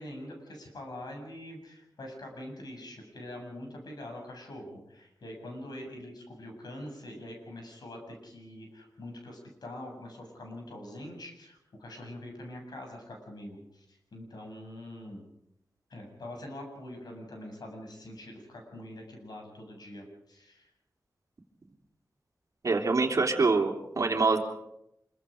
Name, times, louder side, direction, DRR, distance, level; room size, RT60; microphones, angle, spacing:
voice 1, 0.0-15.2 15.9-20.7, left 1 dB, 80° left, 2 dB, 7.4 m, -44 dB
voice 2, 22.6-24.4, right 4 dB, 50° right, 2 dB, 3.2 m, -25 dB
26.0 x 23.5 x 5.1 m, 0.81 s
wide cardioid pair, 105°, 7 cm